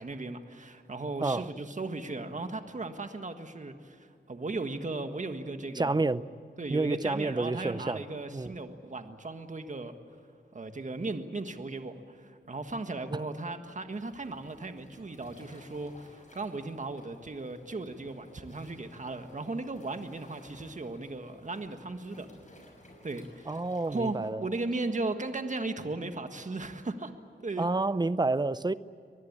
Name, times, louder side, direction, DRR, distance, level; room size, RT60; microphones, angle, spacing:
voice 1, 0.0-6.0 6.6-9.9 10.5-22.3 23.0-23.6 23.8-27.1 27.4-27.7, right 3 dB, 40° right, 1.7 m, -36 dB
voice 2, 5.7-6.2 6.7-8.0 8.3-8.5 23.5-24.4 27.6-28.7, right 3 dB, 20° right, 0.6 m, -29 dB
sound 1, 5.8-9.2, left 4 dB, 90° left, 2.8 m, -61 dB
Waves surf, 13.9-24.3, left 1 dB, 40° left, 6.4 m, -56 dB
24.0 x 20.5 x 8.8 m
wide cardioid pair, 85°, 19 cm